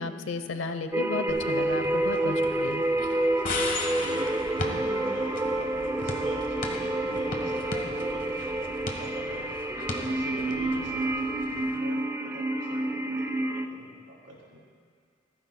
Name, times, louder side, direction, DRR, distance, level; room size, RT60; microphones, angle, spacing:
voice 1, 0.0-2.8, left 3 dB, 85° left, 8 dB, 0.8 m, -33 dB
sound 1, 0.9-13.7, right 1 dB, 15° right, 0.4 m, -29 dB
sound 2, 1.3-11.8, left 2 dB, 45° left, 1.2 m, -38 dB
voice 2, 3.9-9.6 9.9-14.6, equal, 75° right, -4 dB, 3.3 m, -44 dB
26.5 x 9.9 x 2.2 m, 2.1 s
head